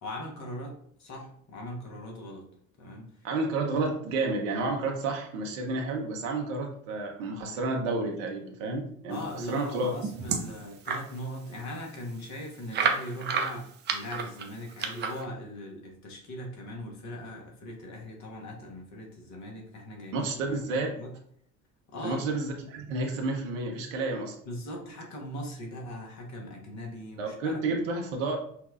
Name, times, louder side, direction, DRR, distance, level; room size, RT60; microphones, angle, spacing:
voice 1, 0.0-2.4 2.8-3.1 9.1-21.2 21.9-22.2 24.4-27.7, left 1 dB, 40° left, 0 dB, 1.2 m, -40 dB
voice 2, 3.2-9.9 20.1-21.0 22.0-24.3 27.2-28.4, right 3 dB, 60° right, 1 dB, 0.9 m, -30 dB
sound 1, 9.5-11.1 11.6-11.7 11.9-12.0 12.7-15.2, right 5 dB, 25° right, 0.5 m, -31 dB
5.7 x 2.2 x 2.4 m, 0.64 s
figure-of-eight pair, 60°, 44 cm